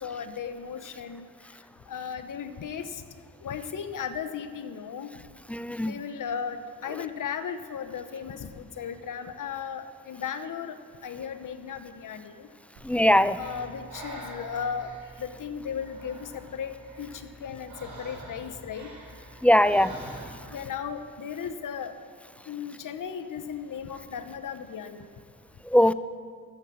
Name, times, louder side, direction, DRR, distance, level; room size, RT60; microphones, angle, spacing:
voice 1, 0.0-1.3 1.9-3.0 3.4-5.2 5.8-12.5 13.4-14.9 15.2-18.9 20.5-21.9 22.5-25.1, left 7 dB, 70° left, 9 dB, 1.0 m, -36 dB
voice 2, 5.5-5.9 12.8-13.4 19.4-20.1 25.7-25.9, equal, 5° left, 15 dB, 0.5 m, -21 dB
Breathing, 12.7-20.6, right 1 dB, 85° right, 3.5 m, -45 dB
13.5 x 7.4 x 6.9 m, 2.2 s
supercardioid pair, 45°, 33 cm